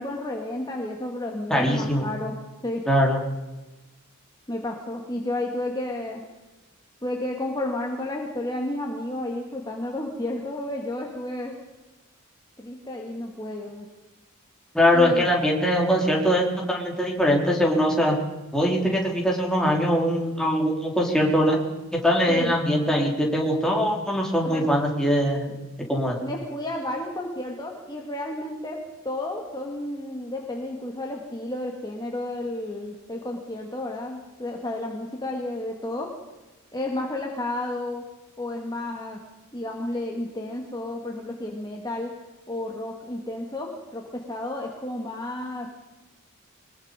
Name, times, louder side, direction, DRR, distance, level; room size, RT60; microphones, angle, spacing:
voice 1, 0.0-2.3 2.6-2.8 4.5-6.2 7.0-11.6 12.6-13.9 14.9-15.2 22.3-22.5 24.4-24.7 26.2-28.8 29.0-36.1 36.7-38.0 38.4-39.2 39.5-42.1 42.5-45.7, left 1 dB, 20° left, 0 dB, 2.3 m, -32 dB
voice 2, 1.5-2.1 2.9-3.2 14.7-18.2 18.5-21.6 21.9-25.5 25.9-26.2, equal, 5° left, -2 dB, 4.3 m, -22 dB
22.5 x 22.0 x 5.3 m, 1.1 s
head